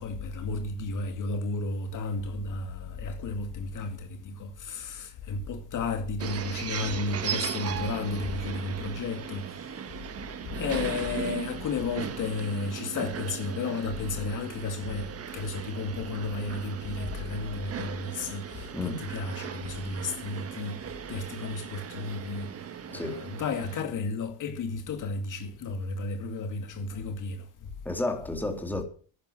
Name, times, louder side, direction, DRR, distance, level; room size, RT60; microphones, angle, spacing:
voice 1, 0.0-9.5 10.5-15.1 15.3-20.8 21.1-22.5 22.9-27.5, left 3 dB, 45° left, 2.3 m, -33 dB
sound 1, 6.2-23.8, right 8 dB, 30° right, 1.4 m, -38 dB
voice 2, 27.8-28.8, left 2 dB, 5° left, 3.1 m, -31 dB
10.5 x 10.5 x 7.8 m
cardioid pair, 135°, 44 cm